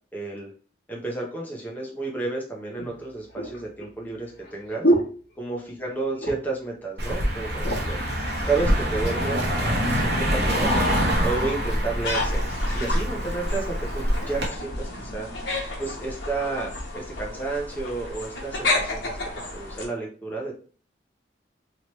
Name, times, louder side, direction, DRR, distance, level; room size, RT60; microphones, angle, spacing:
voice 1, 0.1-0.5 0.9-4.9 5.4-8.0 8.4-10.8 11.2-15.3 15.8-19.2 19.5-20.5, right 3 dB, 10° left, -2 dB, 0.7 m, -31 dB
sound 1, 1.8-1.9 2.8-5.9 6.2-6.6 7.0-7.1 7.4-8.1 8.8-9.5 10.2-10.3, right 1 dB, 60° left, 1.2 m, -28 dB
Car passing by, 7.0-14.5, equal, 60° right, 1.0 m, -25 dB
sound 2, 12.0-19.9, left 2 dB, 85° left, 0.9 m, -31 dB
3.0 x 2.9 x 3.0 m, 0.41 s
head